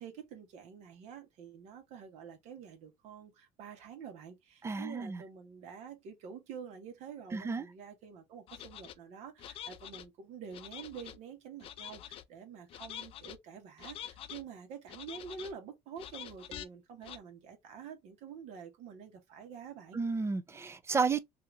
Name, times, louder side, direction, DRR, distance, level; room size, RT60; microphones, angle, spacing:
voice 1, 0.0-20.0, right 7 dB, 65° right, 1.3 m, -48 dB
voice 2, 4.6-5.2 7.3-7.7 19.9-21.2, right 4 dB, 20° right, 0.4 m, -32 dB
sound 1, 8.5-8.9 9.4-10.1 10.5-11.2 11.6-12.2 12.7-13.4 13.8-14.4 14.9-15.5 16.0-16.7 17.0-17.2, left 10 dB, 50° left, 0.5 m, -46 dB
2.8 x 2.7 x 3.4 m
cardioid pair, 110°, 12 cm